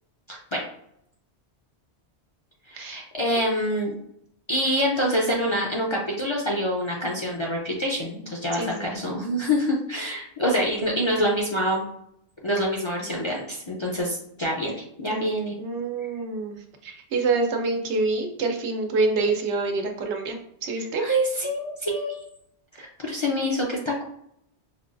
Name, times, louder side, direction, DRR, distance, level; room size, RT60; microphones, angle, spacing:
voice 1, 0.3-0.7 2.7-4.0 4.5-11.9 12.4-14.7 15.0-15.5 21.0-22.2 22.7-24.0, equal, 40° left, -3 dB, 0.4 m, -26 dB
voice 2, 8.5-8.9 15.1-15.3 15.6-21.0, right 3 dB, 85° right, 3 dB, 1.0 m, -27 dB
5.0 x 2.3 x 2.5 m, 0.73 s
omnidirectional pair, 1.1 m